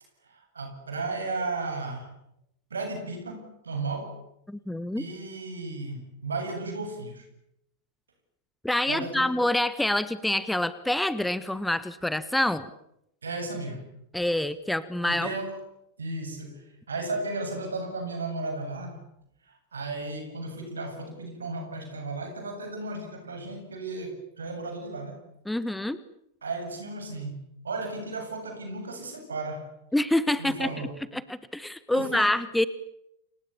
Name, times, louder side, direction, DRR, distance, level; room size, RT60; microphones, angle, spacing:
voice 1, 0.3-2.1 2.7-4.2 5.0-7.2 8.9-9.4 13.2-13.9 15.1-15.6 16.0-19.0 19.5-25.2 26.4-29.7 30.4-31.0 31.9-32.3, right 3 dB, 70° right, 8.0 m, -35 dB
voice 2, 4.5-5.0 8.6-12.7 14.1-15.3 25.5-26.0 29.9-30.7 31.1-32.7, left 1 dB, 5° left, 1.4 m, -26 dB
29.5 x 27.0 x 7.2 m
figure-of-eight pair, 90°, 0 cm